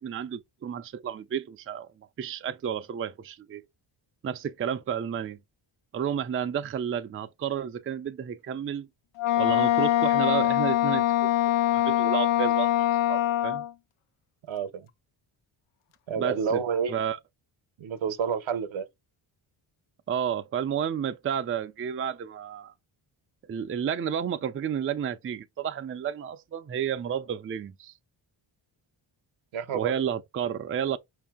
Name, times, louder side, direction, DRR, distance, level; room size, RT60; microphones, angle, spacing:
voice 1, 0.0-1.9 2.2-3.6 4.2-5.4 5.9-8.9 9.4-11.3 11.7-12.7 13.1-13.6 16.2-16.6 16.9-17.2 20.1-22.7 23.5-27.9 29.7-31.0, right 8 dB, 30° right, 0.4 m, -31 dB
Wind instrument woodwind instrument, 9.2-13.7, left 13 dB, 85° left, 0.6 m, -23 dB
voice 2, 14.5-14.9 16.1-16.9 17.8-18.9 29.5-29.9, right 7 dB, 70° right, 0.8 m, -29 dB
5.3 x 2.7 x 3.6 m
cardioid pair, 85°, 49 cm